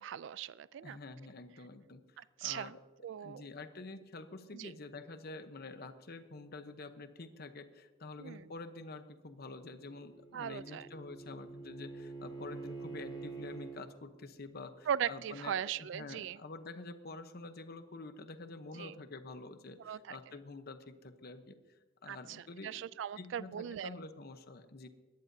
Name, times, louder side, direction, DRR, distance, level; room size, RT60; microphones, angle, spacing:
voice 1, 0.0-1.0 2.2-2.7 3.0-3.4 4.5-4.7 8.2-8.5 10.3-10.9 14.9-16.4 18.7-18.9 19.8-20.2 22.1-23.9, right 9 dB, 65° right, 18 dB, 0.3 m, -39 dB
voice 2, 0.8-2.8 3.2-21.6 22.0-22.8 23.2-24.9, left 3 dB, 55° left, 9 dB, 0.9 m, -48 dB
Bowed string instrument, 9.8-13.8, right 3 dB, 25° left, 4.5 m, -46 dB
20.0 x 14.5 x 2.7 m, 1.3 s
head